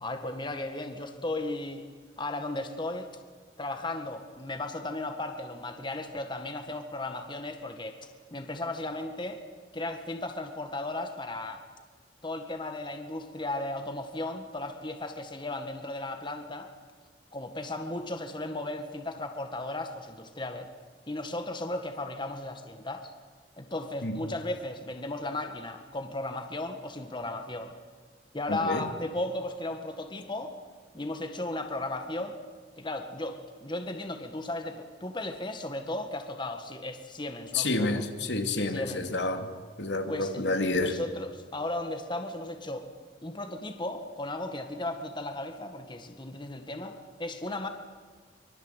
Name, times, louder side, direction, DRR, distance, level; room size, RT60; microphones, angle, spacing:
voice 1, 0.0-1.8 2.2-3.1 3.6-8.0 8.3-9.4 9.7-11.6 12.2-16.7 17.3-20.7 21.1-23.1 23.6-27.7 28.3-30.6 30.9-32.4 32.8-38.0 38.7-39.0 40.1-40.4 40.7-42.9 43.2-47.7, left 2 dB, 25° left, 6 dB, 1.9 m, -35 dB
voice 2, 28.5-28.9 37.5-39.5 39.8-41.0, left 2 dB, 80° left, 5 dB, 2.6 m, -29 dB
25.0 x 23.5 x 8.3 m, 1.5 s
head